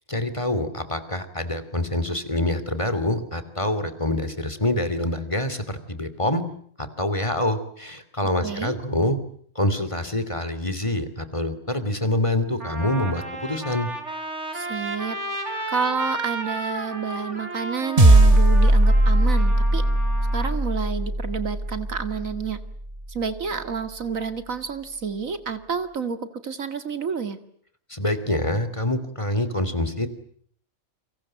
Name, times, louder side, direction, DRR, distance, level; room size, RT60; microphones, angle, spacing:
voice 1, 0.1-6.4 6.8-9.2 9.5-13.9 27.9-30.1, left 1 dB, 25° left, 12 dB, 2.9 m, -26 dB
voice 2, 8.4-8.7 14.5-19.8 20.3-22.6 23.1-27.4, right 6 dB, 90° right, 10 dB, 2.4 m, -29 dB
Trumpet, 11.9-12.0 12.6-20.5, right 2 dB, 60° right, 4.8 m, -33 dB
sound 1, 18.0-22.6, right 1 dB, 30° right, 1.5 m, -18 dB
30.0 x 25.5 x 7.7 m, 0.62 s
omnidirectional pair, 1.4 m